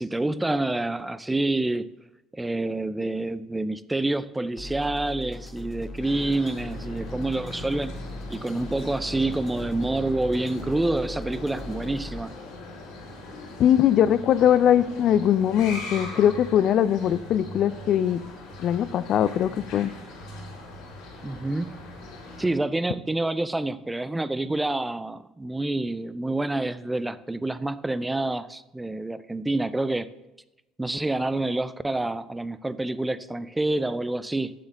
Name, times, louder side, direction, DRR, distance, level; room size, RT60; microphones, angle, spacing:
voice 1, 0.0-1.9 2.3-7.9 8.3-12.3 21.2-21.8 22.4-30.1 30.8-34.5, right 2 dB, 10° right, 0.5 m, -27 dB
sound 1, 4.6-12.2, left 1 dB, 35° left, 1.4 m, -39 dB
sound 2, 6.0-22.4, left 1 dB, 70° left, 3.5 m, -40 dB
voice 2, 13.6-18.2 18.6-19.9, left 10 dB, 55° left, 0.5 m, -21 dB
7.7 x 7.1 x 6.5 m
hypercardioid pair, 65°, 0 cm